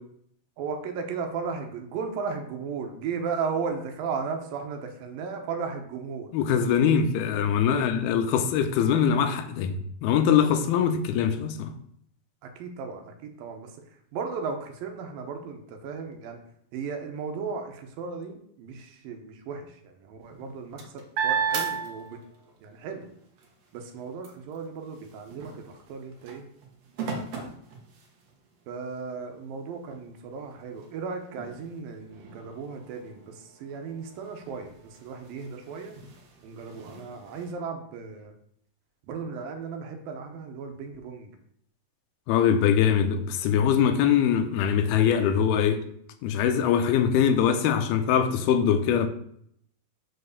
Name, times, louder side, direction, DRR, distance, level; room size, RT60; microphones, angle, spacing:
voice 1, 0.6-6.3 7.7-7.9 12.4-16.4 16.7-22.2 22.6-23.1 23.7-26.5 27.0-27.5 28.7-36.0 36.4-38.3 39.1-41.3, right 5 dB, 75° right, 2.6 m, -35 dB
voice 2, 6.3-11.7 42.3-45.8 46.2-49.1, left 8 dB, 85° left, 2.7 m, -22 dB
sound 1, 20.2-22.6 23.0-28.5 29.1-29.2 29.5-37.5, right 6 dB, 60° right, 1.9 m, -36 dB
6.4 x 4.8 x 6.5 m
omnidirectional pair, 4.4 m